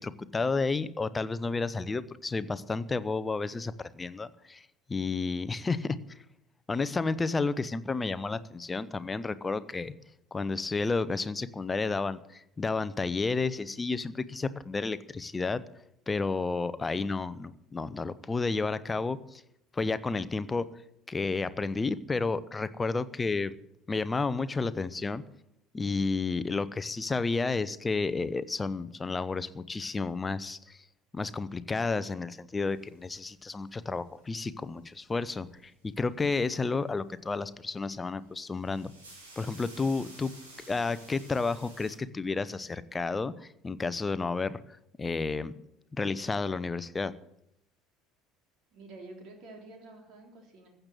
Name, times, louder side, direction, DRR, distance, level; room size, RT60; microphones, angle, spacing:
voice 1, 0.0-6.0 6.7-9.9 10.3-15.6 16.1-19.4 19.7-20.7 21.1-23.6 23.9-25.2 25.7-30.8 31.1-38.9 39.4-40.3 40.7-44.6 45.0-45.5 45.9-47.1, left 4 dB, 20° left, 15 dB, 0.8 m, -31 dB
sound 1, 32.7-33.8 35.0-35.5 37.7-37.9 38.2-42.0, right 2 dB, 75° right, 4.3 m, -52 dB
voice 2, 48.7-50.7, right 2 dB, 50° right, 1 dB, 3.8 m, -49 dB
15.0 x 8.1 x 7.5 m, 0.79 s
figure-of-eight pair, 65°, 0 cm